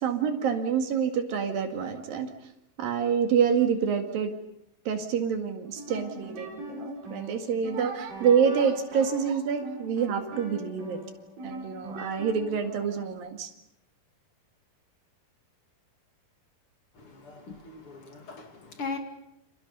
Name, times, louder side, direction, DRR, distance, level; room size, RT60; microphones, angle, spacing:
voice 1, 0.0-2.3 2.8-4.3 4.9-11.0 11.4-13.5, right 7 dB, 65° right, 5 dB, 3.7 m, -27 dB
sound 1, 5.6-13.1, equal, 40° right, 8.5 m, -41 dB
voice 2, 16.9-19.0, left 4 dB, 40° left, 4 dB, 2.9 m, -39 dB
30.0 x 28.0 x 5.5 m, 0.78 s
omnidirectional pair, 4.5 m